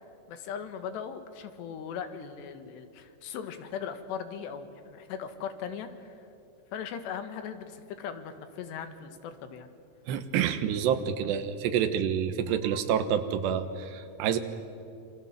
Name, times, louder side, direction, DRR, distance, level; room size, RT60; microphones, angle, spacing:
voice 1, 0.3-6.2 6.7-9.7, left 7 dB, 90° left, 8 dB, 3.7 m, -39 dB
voice 2, 10.1-14.4, right 8 dB, 85° right, 9 dB, 3.4 m, -28 dB
27.5 x 26.5 x 7.5 m, 2.7 s
omnidirectional pair, 4.8 m